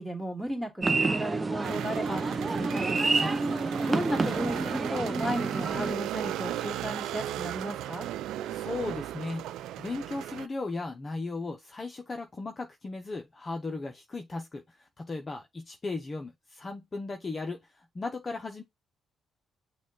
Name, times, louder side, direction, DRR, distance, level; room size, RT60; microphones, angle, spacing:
voice 1, 0.0-3.0 3.9-8.1, equal, 5° left, 2.3 m, -34 dB
sound 1, 0.8-5.9, right 3 dB, 25° right, 0.6 m, -29 dB
sound 2, 1.6-10.5, right 12 dB, 85° right, 0.3 m, -36 dB
voice 2, 8.5-9.5 9.8-18.6, left 3 dB, 30° left, 0.6 m, -36 dB
6.2 x 2.3 x 3.7 m
cardioid pair, 90°, 0 cm